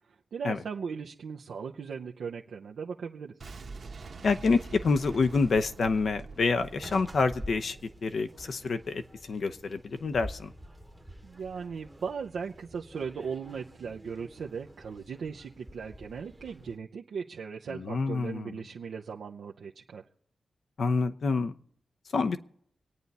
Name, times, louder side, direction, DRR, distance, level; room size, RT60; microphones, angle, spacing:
voice 1, 0.3-3.3 11.2-20.0, right 6 dB, 85° right, -1 dB, 0.8 m, -38 dB
Boom, 3.4-8.3, right 4 dB, 50° right, 1.1 m, -45 dB
voice 2, 4.2-9.0 9.3-10.5 17.7-18.6 20.8-21.5 22.1-22.4, left 4 dB, 55° left, 9 dB, 0.8 m, -27 dB
sound 1, 6.6-16.8, equal, 10° right, 1.0 m, -48 dB
25.0 x 9.4 x 4.2 m, 0.65 s
wide cardioid pair, 140°, 0 cm